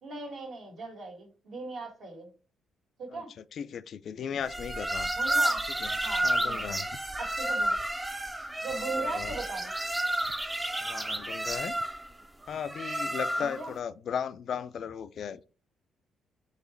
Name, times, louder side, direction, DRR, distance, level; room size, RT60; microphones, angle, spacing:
voice 1, 0.0-2.3 3.0-3.3 5.1-5.6 6.0-6.9 7.2-7.8 8.6-9.7 13.4-13.7, right 3 dB, 70° right, 1.8 m, -39 dB
voice 2, 3.5-5.1 5.7-6.9 8.7-9.3 10.8-11.8 12.5-15.4, left 7 dB, 60° left, 0.4 m, -36 dB
sound 1, 4.5-13.7, right 1 dB, 15° right, 0.5 m, -31 dB
4.0 x 3.0 x 4.3 m
cardioid pair, 90°, 0 cm